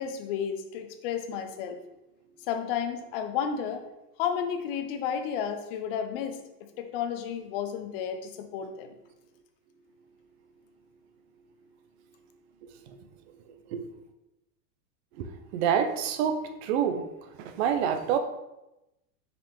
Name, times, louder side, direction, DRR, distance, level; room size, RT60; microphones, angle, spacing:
voice 1, 0.0-1.8 2.5-3.8 4.2-6.4 6.8-8.9, left 8 dB, 35° left, 7 dB, 0.6 m, -32 dB
voice 2, 15.5-17.0 17.4-18.2, right 8 dB, 40° right, 7 dB, 0.7 m, -27 dB
6.0 x 5.1 x 3.5 m, 0.93 s
supercardioid pair, 160°, 48 cm